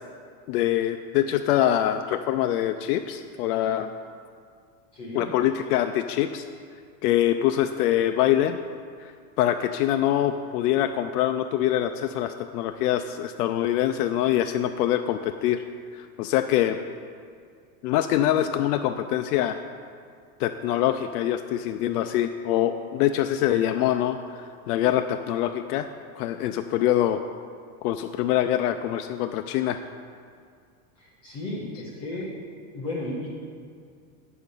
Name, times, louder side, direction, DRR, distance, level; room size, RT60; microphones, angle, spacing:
voice 1, 0.5-3.9 5.1-6.4 7.0-8.6 9.0-9.1 9.4-15.6 15.9-16.8 17.8-19.6 20.4-25.9 26.1-27.2 27.8-29.8, left 12 dB, 90° left, 7 dB, 0.5 m, -24 dB
voice 2, 4.9-5.3 31.0-32.3 32.7-33.3, left 1 dB, 15° left, -5 dB, 0.3 m, -34 dB
8.7 x 6.5 x 5.3 m, 2.2 s
supercardioid pair, 175°, 45 cm